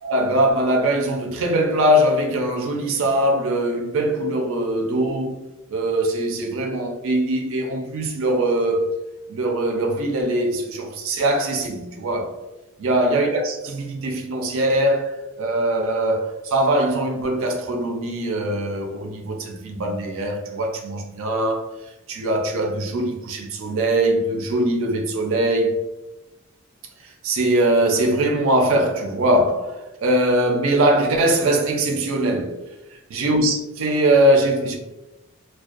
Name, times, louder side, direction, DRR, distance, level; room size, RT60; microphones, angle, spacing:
voice 1, 0.0-5.4 5.7-9.0 9.3-12.5 12.8-21.7 22.1-25.9 27.0-32.6 33.1-34.8, right 1 dB, 70° right, 0.4 m, -21 dB
2.4 x 2.2 x 2.3 m
head